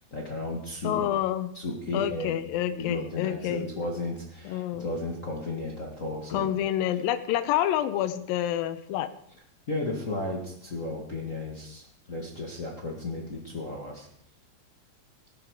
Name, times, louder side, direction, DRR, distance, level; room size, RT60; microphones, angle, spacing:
voice 1, 0.0-1.0 1.5-6.5 9.7-14.1, left 2 dB, 45° left, -1 dB, 1.0 m, -34 dB
voice 2, 0.8-1.5 1.9-3.7 4.5-4.9 6.3-9.1, left 11 dB, 80° left, 11 dB, 2.5 m, -28 dB
15.5 x 12.0 x 4.7 m, 0.69 s
omnidirectional pair, 4.2 m